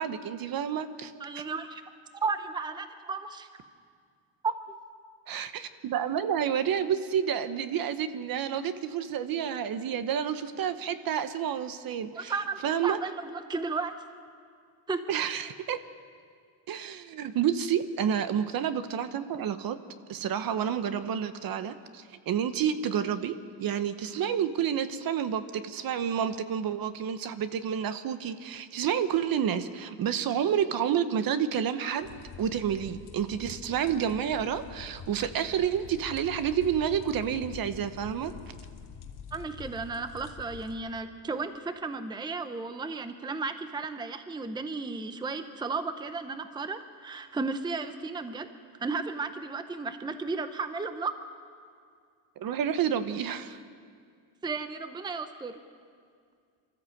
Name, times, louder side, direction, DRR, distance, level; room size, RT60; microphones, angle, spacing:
voice 1, 0.0-1.1 5.3-12.3 12.6-13.0 15.1-15.8 16.7-19.8 20.1-38.3 52.4-53.6, right 8 dB, 50° right, 12 dB, 1.0 m, -29 dB
voice 2, 1.2-1.8 2.1-3.5 4.4-4.5 12.1-13.9 14.9-15.0 39.3-48.5 48.8-51.1 54.4-55.6, right 4 dB, 10° right, 10 dB, 0.7 m, -34 dB
sound 1, 32.0-40.7, left 6 dB, 55° left, 1.8 m, -46 dB
24.5 x 14.0 x 7.8 m, 2.1 s
cardioid pair, 140°, 46 cm